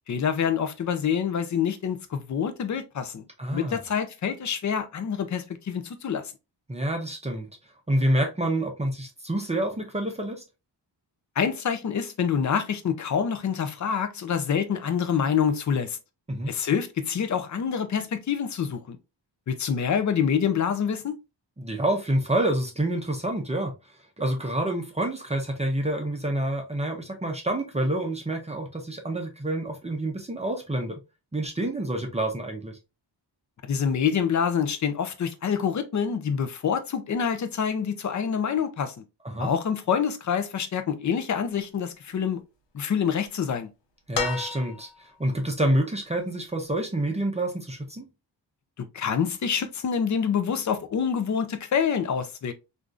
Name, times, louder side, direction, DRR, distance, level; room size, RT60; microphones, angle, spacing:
voice 1, 0.1-3.2 3.5-6.2 11.4-16.0 16.5-19.0 19.5-21.1 33.7-38.9 39.4-42.4 42.7-43.7 48.8-52.5, left 7 dB, 45° left, 0.5 m, -26 dB
voice 2, 3.4-3.8 6.7-7.5 7.9-10.4 16.3-16.5 21.6-23.7 24.2-31.0 31.3-32.8 39.2-39.5 44.1-48.1, right 1 dB, 15° right, 0.6 m, -27 dB
sound 1, 44.1-45.2 46.7-46.8, left 6 dB, 75° left, 0.9 m, -31 dB
3.4 x 2.6 x 2.4 m
wide cardioid pair, 135°, 43 cm